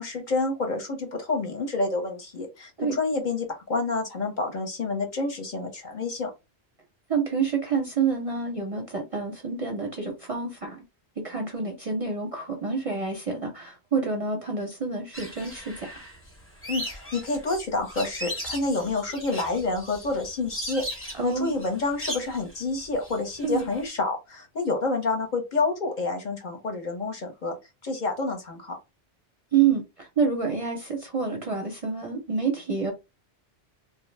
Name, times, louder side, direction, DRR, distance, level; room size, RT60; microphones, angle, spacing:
voice 1, 0.0-6.3 16.7-27.6 27.8-28.8, left 3 dB, 50° left, 0.7 m, -28 dB
voice 2, 7.1-10.8 11.2-16.0 21.2-21.6 23.4-23.7 29.5-32.9, right 5 dB, 40° right, 0.5 m, -28 dB
sound 1, 15.1-23.9, equal, 15° left, 0.6 m, -38 dB
2.6 x 2.0 x 3.1 m
omnidirectional pair, 1.1 m